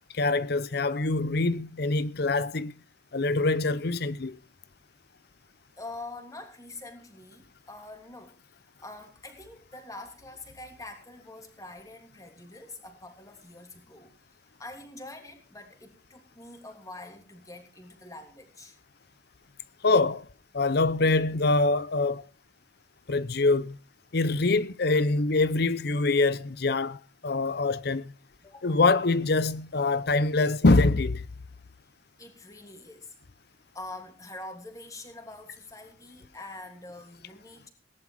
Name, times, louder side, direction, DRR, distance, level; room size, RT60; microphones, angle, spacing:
voice 1, 0.1-2.7 3.1-4.4 19.8-20.3 20.5-22.2 23.1-23.8 24.1-28.1 28.6-31.2, left 3 dB, 60° left, 0.7 m, -24 dB
voice 2, 5.8-8.4 8.8-14.1 14.6-18.8 28.4-28.8 32.2-33.1 33.7-37.7, left 2 dB, 20° left, 3.0 m, -45 dB
18.5 x 11.0 x 4.8 m
head